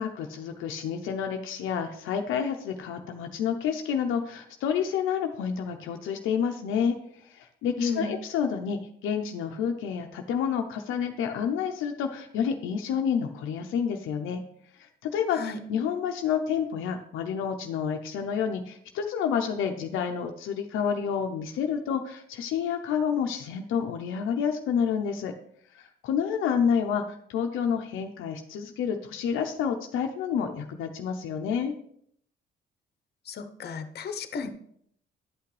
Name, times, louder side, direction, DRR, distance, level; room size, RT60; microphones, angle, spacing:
voice 1, 0.0-14.4 14.7-25.3 25.7-31.7, left 7 dB, 90° left, 4 dB, 0.7 m, -29 dB
voice 2, 7.8-8.1 15.3-15.6 33.3-34.5, left 4 dB, 55° left, 9 dB, 0.9 m, -32 dB
11.0 x 5.8 x 3.2 m, 0.67 s
cardioid pair, 90°, 20 cm